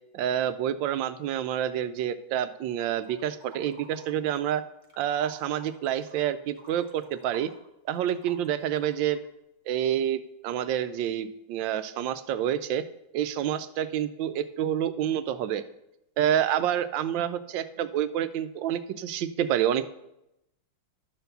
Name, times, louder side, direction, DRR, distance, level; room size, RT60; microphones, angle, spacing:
voice 1, 0.1-4.6 5.0-7.5 7.9-9.2 9.7-12.9 13.1-15.6 16.2-19.9, right 10 dB, 85° right, 13 dB, 1.3 m, -28 dB
sound 1, 3.0-4.5 4.8-9.3, right 2 dB, 45° right, 1.6 m, -52 dB
12.0 x 4.5 x 6.7 m, 0.87 s
omnidirectional pair, 2.0 m